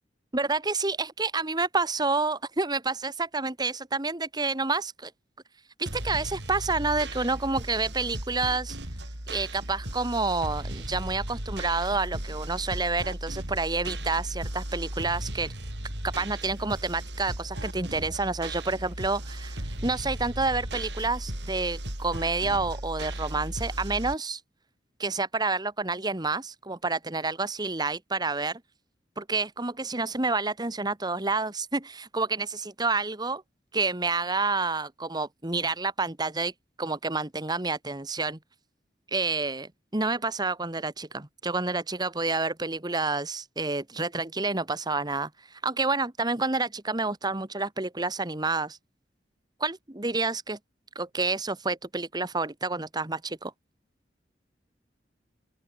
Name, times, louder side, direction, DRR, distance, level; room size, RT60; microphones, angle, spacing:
voice 1, 0.3-5.1 5.8-8.8 9.3-15.5 16.0-24.4 25.0-28.6 29.2-33.4 33.7-36.5 36.8-38.4 39.1-48.8 49.6-50.6 50.9-53.5, right 3 dB, 25° right, 1.7 m, -29 dB
sound 1, 5.9-24.2, right 1 dB, 75° right, 7.9 m, -36 dB
open air
head